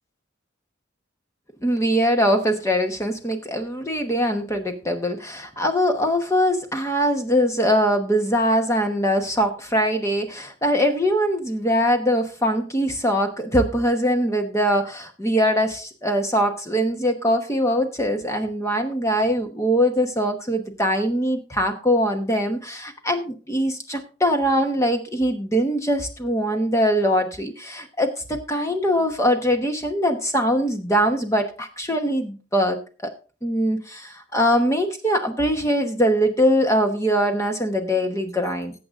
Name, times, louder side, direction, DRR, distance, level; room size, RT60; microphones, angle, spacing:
voice 1, 1.6-33.1 33.4-38.7, equal, 15° left, 5 dB, 1.0 m, -22 dB
18.5 x 7.8 x 2.5 m, 0.35 s
head